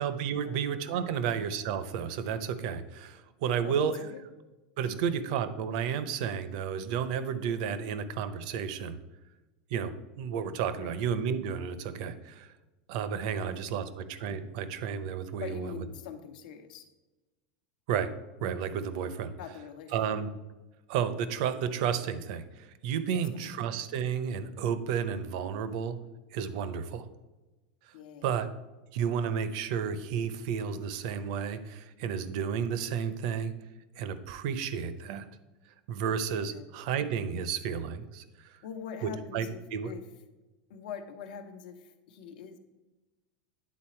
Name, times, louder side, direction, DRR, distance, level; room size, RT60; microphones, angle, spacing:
voice 1, 0.0-4.0 4.8-9.0 9.7-12.5 12.9-15.7 17.9-18.1 18.4-19.3 19.9-20.3 20.9-26.0 26.3-27.1 28.2-28.5 28.9-33.5 34.0-35.3 35.9-38.6 39.0-39.9, right 7 dB, 55° right, 12 dB, 0.6 m, -32 dB
voice 2, 3.6-4.2 4.8-5.0 10.8-10.9 13.3-13.8 15.4-16.9 19.3-20.0 23.1-23.5 27.9-28.4 36.5-36.6 38.6-40.0 40.7-42.6, left 7 dB, 70° left, 7 dB, 0.9 m, -44 dB
9.4 x 4.0 x 4.3 m, 1.1 s
supercardioid pair, 160°, 5 cm